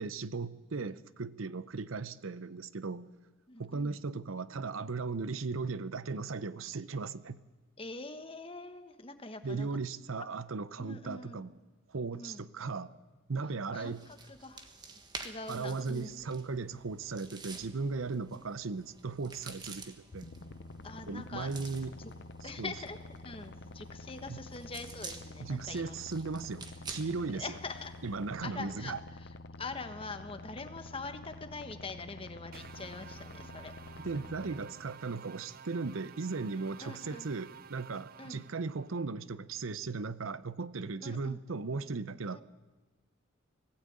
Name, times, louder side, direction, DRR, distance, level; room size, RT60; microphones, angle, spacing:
voice 1, 0.0-3.1 3.6-7.4 9.4-11.5 11.9-13.0 13.3-14.0 15.5-20.3 21.1-21.9 22.6-22.7 24.3-24.4 25.4-27.4 28.0-29.0 34.0-42.4, right 4 dB, 85° right, 16 dB, 0.7 m, -37 dB
voice 2, 3.5-3.9 7.8-9.7 10.8-11.4 12.1-12.5 13.7-14.7 15.1-16.3 20.8-21.7 22.0-22.1 22.4-26.3 27.3-27.9 28.4-29.3 29.6-34.1 36.8-37.3 38.2-38.4 41.0-41.4 42.3-42.4, left 3 dB, 25° left, 8 dB, 1.3 m, -44 dB
sound 1, 13.7-28.4, right 4 dB, 20° right, 1.4 m, -50 dB
sound 2, 20.1-34.6, left 2 dB, 55° left, 0.7 m, -48 dB
sound 3, 32.5-39.0, right 7 dB, 45° right, 0.5 m, -52 dB
18.5 x 16.0 x 8.8 m, 1.2 s
head